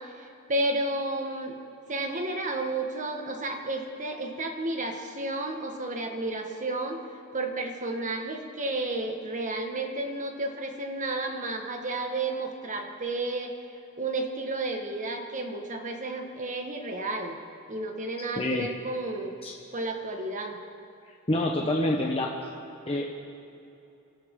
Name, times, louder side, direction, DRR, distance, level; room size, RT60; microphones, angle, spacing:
voice 1, 0.0-1.5 1.9-7.0 7.3-13.5 14.0-17.4 17.7-19.3 19.7-20.6, right 2 dB, 35° right, 3 dB, 1.6 m, -32 dB
voice 2, 18.4-18.7 19.4-19.5 21.3-22.3 22.9-23.1, left 1 dB, 25° left, -1 dB, 1.1 m, -26 dB
26.0 x 13.5 x 3.8 m, 2.8 s
head